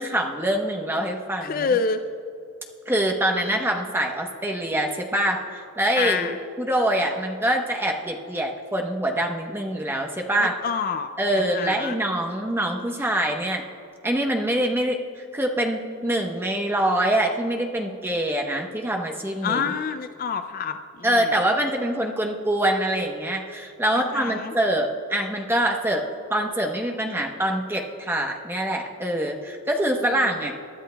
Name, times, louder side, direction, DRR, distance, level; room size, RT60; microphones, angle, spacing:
voice 1, 0.0-1.7 2.9-10.6 11.2-13.6 14.0-15.0 15.3-19.7 21.0-26.0 26.3-30.6, right 1 dB, 10° right, 2 dB, 0.9 m, -25 dB
voice 2, 1.4-2.0 6.0-6.4 10.4-12.0 19.4-21.3 23.9-24.5, left 5 dB, 40° left, 9 dB, 0.3 m, -28 dB
22.5 x 11.0 x 2.2 m, 2.6 s
head